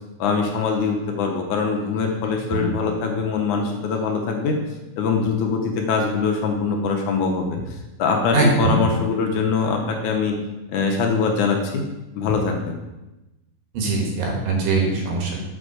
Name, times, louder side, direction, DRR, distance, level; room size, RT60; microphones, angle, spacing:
voice 1, 0.2-4.6 5.0-10.4 10.7-11.8 12.2-12.8, left 5 dB, 75° left, 2 dB, 2.1 m, -23 dB
voice 2, 8.3-8.8 13.7-15.4, right 3 dB, 85° right, 0 dB, 3.2 m, -21 dB
6.8 x 5.2 x 4.8 m, 1.0 s
omnidirectional pair, 3.9 m